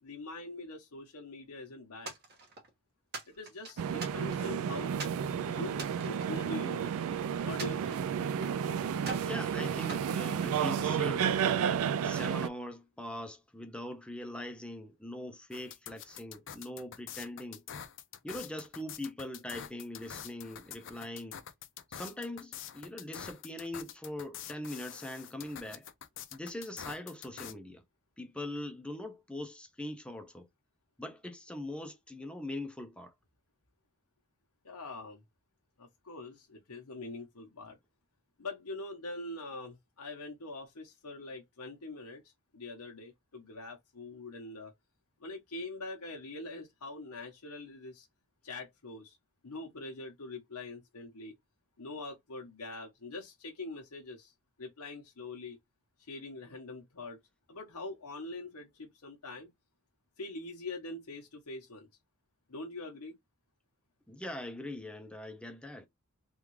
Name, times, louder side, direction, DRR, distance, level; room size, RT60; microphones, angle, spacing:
voice 1, 0.0-2.1 3.3-5.0 5.5-7.0 7.4-8.0 34.6-35.2 35.8-37.8 38.4-42.2 42.5-44.7 45.2-48.1 48.4-49.2 49.4-51.4 51.8-54.3 54.6-55.6 56.1-57.2 57.5-59.5 60.2-61.9 62.5-63.2, left 2 dB, 90° left, 0.9 m, -43 dB
sound 1, 2.1-2.7 3.1-4.5 5.0-5.2 5.7-7.1 7.6-8.6 9.0-9.4 9.9-10.9, right 3 dB, 45° right, 1.2 m, -44 dB
sound 2, 3.8-12.5, right 8 dB, 70° right, 0.3 m, -32 dB
voice 2, 9.1-11.5 12.0-17.6 18.2-21.4 21.9-25.9 26.3-27.8 28.2-30.5 31.0-33.1 64.1-65.9, left 1 dB, 5° left, 0.5 m, -42 dB
sound 3, 15.5-27.5, left 9 dB, 60° left, 0.5 m, -46 dB
3.6 x 2.3 x 3.1 m
head